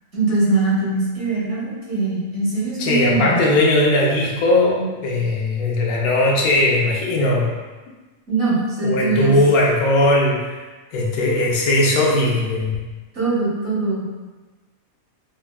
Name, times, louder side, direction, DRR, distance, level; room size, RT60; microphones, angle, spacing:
voice 1, 0.1-3.4 8.3-9.3 13.1-14.0, right 3 dB, 55° right, -8 dB, 1.5 m, -21 dB
voice 2, 2.8-7.5 8.8-10.6 10.9-12.7, left 1 dB, 85° left, -2 dB, 1.1 m, -18 dB
5.2 x 2.3 x 2.2 m, 1.2 s
omnidirectional pair, 1.5 m